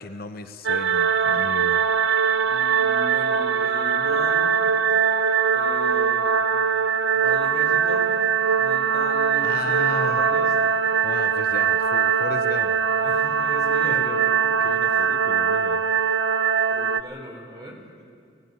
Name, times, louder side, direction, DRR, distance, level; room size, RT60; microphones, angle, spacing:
voice 1, 0.0-1.8 9.4-10.2 11.0-12.8 13.8-14.2 14.6-15.9, left 3 dB, 50° left, 9 dB, 0.8 m, -35 dB
sound 1, 0.6-17.0, right 7 dB, 70° right, 0.7 m, -21 dB
voice 2, 2.4-4.5 5.5-6.4 7.1-8.1 8.6-10.5 13.0-14.5 14.8-15.1 16.7-18.1, equal, 20° right, 0 dB, 3.7 m, -39 dB
17.5 x 17.0 x 9.5 m, 2.3 s
head